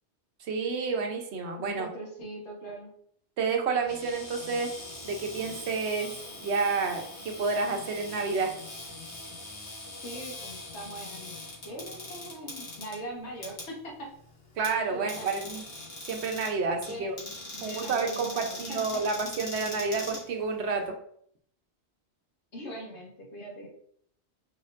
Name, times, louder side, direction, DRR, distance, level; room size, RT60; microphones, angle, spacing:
voice 1, 0.4-1.9 3.4-4.7 5.0-6.1 6.4-8.6 14.6-15.6 16.1-17.2 17.6-21.0, right 4 dB, 75° right, 4 dB, 1.0 m, -30 dB
voice 2, 1.6-2.9 10.0-11.4 11.6-14.1 14.9-15.5 16.9-17.1 17.5-18.8 22.5-23.7, right 1 dB, 85° left, -1 dB, 1.6 m, -41 dB
Cupboard open or close, 3.8-20.9, left 2 dB, 60° left, 1.7 m, -42 dB
5.1 x 4.2 x 2.5 m, 0.66 s
omnidirectional pair, 1.1 m